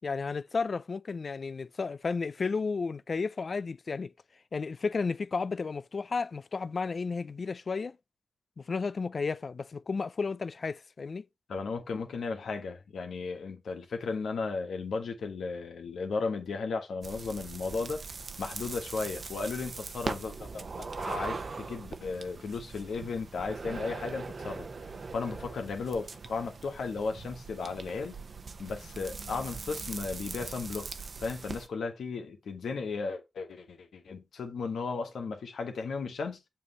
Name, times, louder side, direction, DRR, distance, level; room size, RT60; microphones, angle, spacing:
voice 1, 0.0-4.1 4.5-8.0 8.6-11.2, left 4 dB, 60° left, 0.4 m, -33 dB
voice 2, 11.5-18.0 18.4-24.7 25.1-28.2 28.6-30.9 31.2-36.4, left 4 dB, 85° left, 1.4 m, -35 dB
sound 1, 17.0-31.7, right 4 dB, 60° right, 0.9 m, -41 dB
7.5 x 3.2 x 5.5 m
cardioid pair, 50°, 0 cm